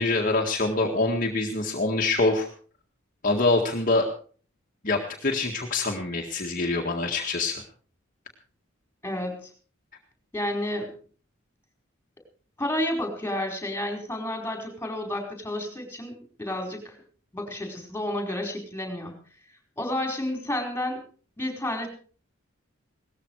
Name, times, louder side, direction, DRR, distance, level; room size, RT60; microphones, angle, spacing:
voice 1, 0.0-2.5 3.2-4.1 4.8-7.6, left 2 dB, 40° left, 1 dB, 1.9 m, -25 dB
voice 2, 9.0-9.5 10.3-10.9 12.6-16.9 17.3-19.1 19.8-21.0 21.4-21.9, left 1 dB, 10° left, 3 dB, 4.7 m, -31 dB
18.5 x 14.5 x 4.8 m, 0.43 s
head